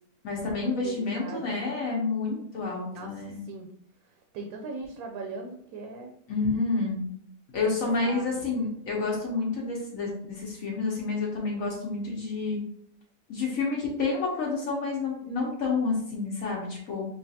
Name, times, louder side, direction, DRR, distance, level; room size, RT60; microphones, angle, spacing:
voice 1, 0.2-3.4 6.3-7.0 7.5-12.6 13.3-17.1, left 3 dB, 65° left, -3 dB, 1.2 m, -29 dB
voice 2, 0.8-1.6 2.9-3.7 4.0-6.1 7.6-8.4, right 3 dB, 75° right, 3 dB, 1.0 m, -40 dB
5.5 x 2.4 x 2.7 m, 0.68 s
omnidirectional pair, 1.6 m